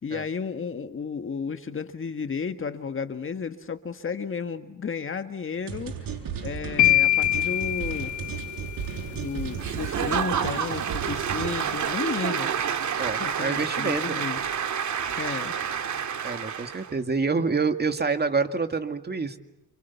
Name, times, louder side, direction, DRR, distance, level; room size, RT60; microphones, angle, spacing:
voice 1, 0.0-6.1 6.4-8.1 9.1-12.5 13.2-14.4 15.2-15.5, left 5 dB, 35° left, 8 dB, 1.7 m, -33 dB
sound 1, 5.7-11.7, right 7 dB, 85° right, 8.0 m, -35 dB
sound 2, 6.8-8.9, left 15 dB, 55° left, 0.9 m, -23 dB
Applause / Crowd, 9.6-16.9, right 7 dB, 55° right, 2.5 m, -29 dB
voice 2, 13.0-14.2 16.2-19.4, right 4 dB, 30° right, 7 dB, 2.2 m, -27 dB
29.5 x 27.5 x 7.1 m, 0.93 s
cardioid pair, 120°, 34 cm